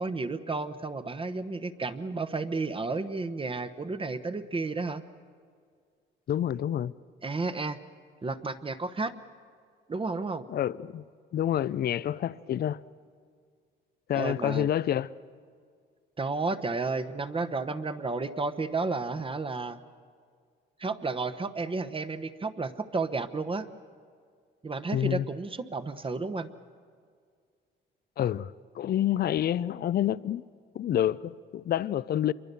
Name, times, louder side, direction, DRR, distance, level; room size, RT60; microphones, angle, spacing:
voice 1, 0.0-5.0 7.2-7.8 8.2-9.1 9.9-10.4 14.1-14.7 16.2-19.8 20.8-23.7 24.6-26.5, right 3 dB, 25° right, 1.1 m, -32 dB
voice 2, 6.3-6.9 10.5-11.0 11.3-12.8 14.1-15.1 24.9-25.3 28.2-30.4 30.7-32.3, left 11 dB, 50° left, 0.5 m, -28 dB
27.0 x 23.5 x 6.9 m
cardioid pair, 90°, 20 cm